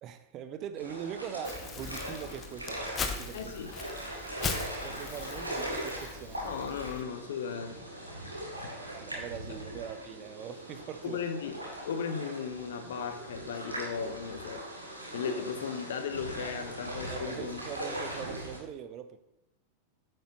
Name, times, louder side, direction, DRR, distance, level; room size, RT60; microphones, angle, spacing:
voice 1, 0.0-3.5 4.8-6.7 8.9-11.2 17.1-19.2, right 9 dB, 35° right, 11 dB, 0.6 m, -42 dB
sound 1, 0.8-18.6, right 1 dB, 85° right, 1.7 m, -40 dB
Crumpling crinkling, 1.4-7.0, left 5 dB, 25° left, 0.9 m, -39 dB
voice 2, 3.3-3.7 6.4-7.8 11.0-11.6 11.8-14.7 15.1-17.6, left 6 dB, 60° left, 7 dB, 0.9 m, -36 dB
9.3 x 7.7 x 3.0 m, 0.86 s
figure-of-eight pair, 90°, 0 cm